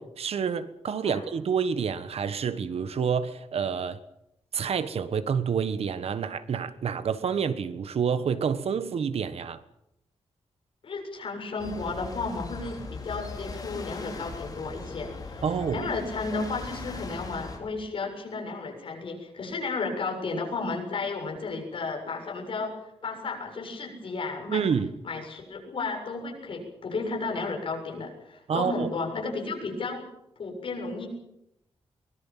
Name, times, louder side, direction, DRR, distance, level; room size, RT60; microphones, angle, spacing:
voice 1, 0.0-4.0 4.5-9.6 15.4-15.9 24.5-24.9 28.5-28.9, right 6 dB, 70° right, 1.4 m, -28 dB
voice 2, 10.8-15.5 15.7-22.7 23.0-24.6 25.0-30.0 30.4-31.1, left 3 dB, 55° left, 7.3 m, -33 dB
sound 1, 11.6-17.6, left 3 dB, 35° left, 4.7 m, -39 dB
23.5 x 21.5 x 7.5 m
wide cardioid pair, 175°, 11 cm